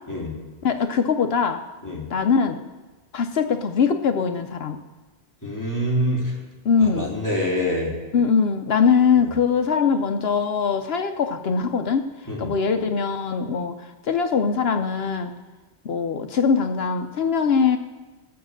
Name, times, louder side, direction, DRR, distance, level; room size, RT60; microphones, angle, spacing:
voice 1, 0.6-1.6 2.1-2.6 3.1-4.8 6.6-7.2 8.1-12.1 12.4-15.3 15.8-17.8, left 6 dB, 65° left, 7 dB, 0.9 m, -22 dB
voice 2, 5.4-6.4 6.8-7.9 9.2-9.3 12.3-12.5, equal, 15° left, -5 dB, 2.8 m, -26 dB
16.0 x 7.0 x 6.4 m, 1.2 s
omnidirectional pair, 1.2 m